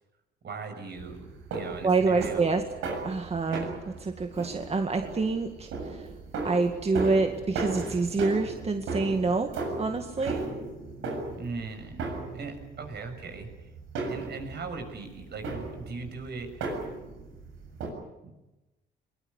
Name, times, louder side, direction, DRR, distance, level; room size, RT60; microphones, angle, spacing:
voice 1, 0.4-2.7 3.5-3.8 11.4-12.1 12.3-13.5 14.1-16.7 18.2-18.3, right 4 dB, 55° right, 6 dB, 6.5 m, -39 dB
sound 1, 0.9-17.9, right 3 dB, 85° right, 7.3 m, -37 dB
voice 2, 1.8-2.6 2.9-3.7 4.0-6.1 6.4-10.4, right 3 dB, 30° right, 5 dB, 2.0 m, -27 dB
22.5 x 20.5 x 9.7 m, 1.0 s
cardioid pair, 90°, 20 cm